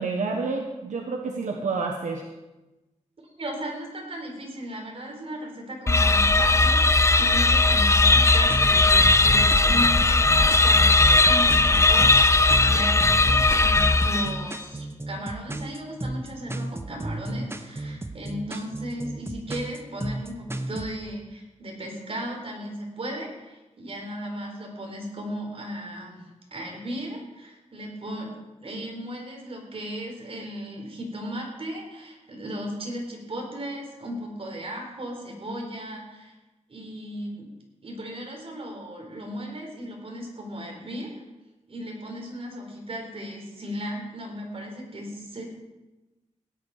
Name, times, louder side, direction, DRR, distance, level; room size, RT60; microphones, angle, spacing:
voice 1, 0.0-2.2, right 4 dB, 80° right, 2 dB, 1.2 m, -29 dB
voice 2, 3.4-28.3 28.6-36.3 36.7-37.5 37.8-41.2 41.7-45.5, equal, 50° right, 0 dB, 4.3 m, -36 dB
sound 1, 5.9-14.6, left 3 dB, 25° left, 0.5 m, -18 dB
sound 2, 8.1-20.9, right 1 dB, 20° right, 1.1 m, -34 dB
17.0 x 10.5 x 5.0 m, 1.1 s
wide cardioid pair, 90°, 12 cm